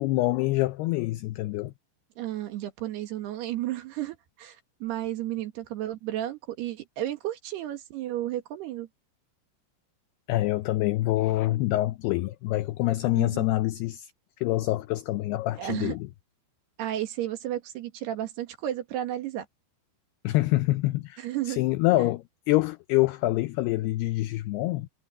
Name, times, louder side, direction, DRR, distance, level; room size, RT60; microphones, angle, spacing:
voice 1, 0.0-1.7 10.3-14.1 14.4-16.1 20.2-24.9, left 17 dB, 90° left, 2.3 m, -26 dB
voice 2, 2.2-8.9 13.1-13.5 15.6-16.0 16.8-19.5 21.2-21.6 22.0-22.1, right 13 dB, 65° right, 3.4 m, -33 dB
omnidirectional pair, 5.3 m